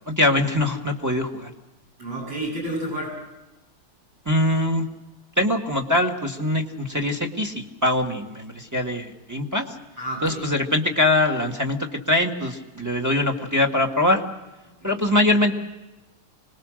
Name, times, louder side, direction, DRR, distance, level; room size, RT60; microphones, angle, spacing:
voice 1, 0.1-1.5 4.2-4.8 5.4-9.6 10.2-14.2 14.8-15.6, left 1 dB, 10° right, 3 dB, 1.5 m, -22 dB
voice 2, 2.0-3.2 10.0-10.6 14.8-15.0, right 1 dB, 60° right, -2 dB, 8.9 m, -31 dB
25.5 x 20.5 x 6.4 m, 1.0 s
omnidirectional pair, 2.4 m